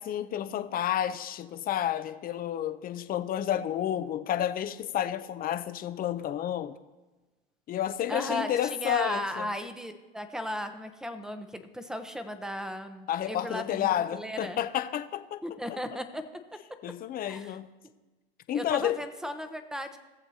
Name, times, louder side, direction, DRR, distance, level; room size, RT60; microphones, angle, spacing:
voice 1, 0.0-6.7 7.7-9.5 13.1-15.4 15.7-15.8 16.8-17.7 18.5-19.0, left 11 dB, 30° left, 11 dB, 0.6 m, -30 dB
voice 2, 8.1-14.6 15.4-16.3 17.2-17.6 18.5-20.0, equal, ahead, 9 dB, 0.8 m, -36 dB
19.0 x 7.2 x 2.8 m, 1.2 s
hypercardioid pair, 105°, 30 cm